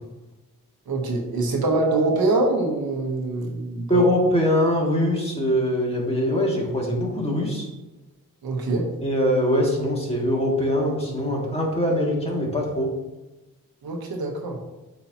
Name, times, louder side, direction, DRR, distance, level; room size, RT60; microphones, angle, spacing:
voice 1, 0.9-4.0 8.4-8.9 13.8-14.6, right 2 dB, 85° right, 1 dB, 1.1 m, -24 dB
voice 2, 3.9-7.7 9.0-12.9, equal, 15° left, -3 dB, 2.2 m, -22 dB
8.3 x 4.8 x 2.9 m, 1.1 s
cardioid pair, 50°, 36 cm